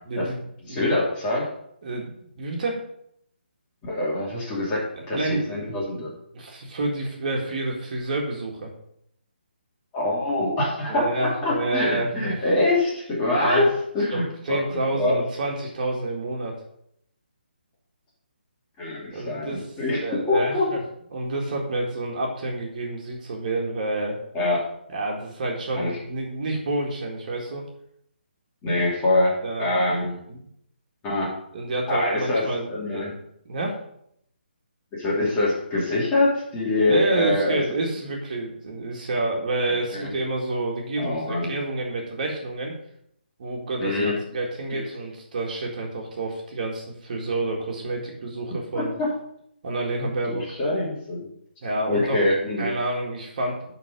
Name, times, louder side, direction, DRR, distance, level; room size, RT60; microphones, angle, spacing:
voice 1, 0.1-0.4 0.7-0.9 1.8-2.8 5.1-6.1 6.3-8.7 10.9-12.4 13.3-13.7 14.1-16.6 19.1-19.7 20.0-20.8 21.1-24.2 24.9-27.6 29.4-29.7 30.3-30.4 31.5-33.1 33.5-33.8 36.8-42.7 43.4-48.9 49.6-50.5 51.6-52.2 52.6-53.7, right 2 dB, 50° right, 0 dB, 2.0 m, -29 dB
voice 2, 0.7-1.5 3.8-4.8 5.1-6.1 9.9-15.2 18.8-20.7 24.3-24.7 25.7-26.0 28.6-30.2 31.0-31.3 31.9-33.2 34.9-37.8 39.9-40.1 41.0-41.5 43.8-44.2 44.7-44.8 48.7-49.1 50.3-51.3 51.9-52.7, left 2 dB, 20° left, -5 dB, 2.6 m, -24 dB
9.9 x 4.2 x 5.2 m, 0.71 s
figure-of-eight pair, 150°, 6 cm